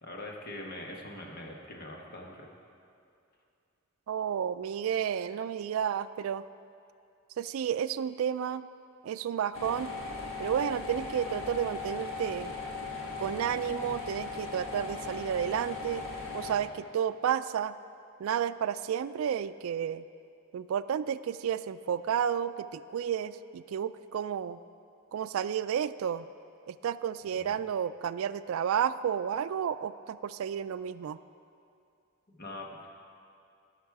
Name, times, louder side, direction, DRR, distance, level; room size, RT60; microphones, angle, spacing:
voice 1, 0.0-2.5 27.3-27.5 32.3-32.9, left 1 dB, 45° left, 0 dB, 1.3 m, -43 dB
voice 2, 4.1-6.4 7.4-8.7 9.0-9.9 10.4-12.5 13.2-16.1 16.3-17.7 18.2-20.0 20.5-24.6 25.1-26.3 26.7-31.2, right 8 dB, 80° right, 14 dB, 0.3 m, -31 dB
sound 1, 9.5-16.6, left 4 dB, 65° left, 1.6 m, -38 dB
16.5 x 6.3 x 4.7 m, 2.5 s
head